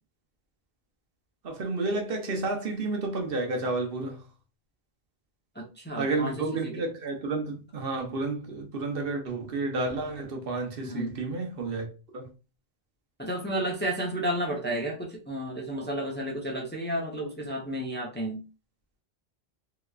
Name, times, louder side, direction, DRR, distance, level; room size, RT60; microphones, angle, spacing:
voice 1, 1.4-4.3 6.0-11.9 12.1-12.3, right 3 dB, 65° right, 1.0 m, -31 dB
voice 2, 5.6-6.3 6.6-6.7 10.8-11.1 13.2-18.4, right 1 dB, 10° left, 0.6 m, -32 dB
3.4 x 2.9 x 2.3 m
omnidirectional pair, 1.1 m